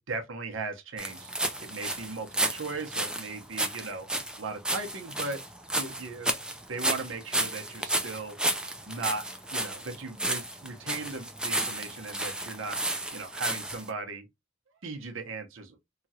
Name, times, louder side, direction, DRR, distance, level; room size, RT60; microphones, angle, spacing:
voice 1, 0.0-4.0 4.4-5.4 5.7-6.3 6.7-8.4 8.9-9.3 9.5-12.8 13.1-14.3 14.8-15.8, right 3 dB, 70° right, 0.8 m, -37 dB
sound 1, 1.0-13.9, right 1 dB, 5° right, 0.4 m, -32 dB
2.9 x 2.4 x 2.7 m
head